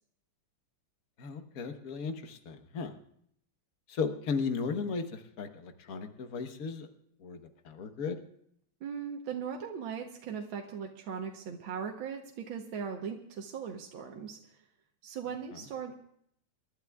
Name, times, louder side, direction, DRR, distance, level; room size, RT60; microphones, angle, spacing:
voice 1, 1.2-2.9 3.9-6.9 7.2-7.4 7.6-8.2, left 5 dB, 50° left, 7 dB, 1.3 m, -35 dB
voice 2, 8.8-14.4 15.0-15.9, right 7 dB, 65° right, 2 dB, 1.7 m, -39 dB
28.5 x 12.0 x 2.3 m, 0.69 s
omnidirectional pair, 2.4 m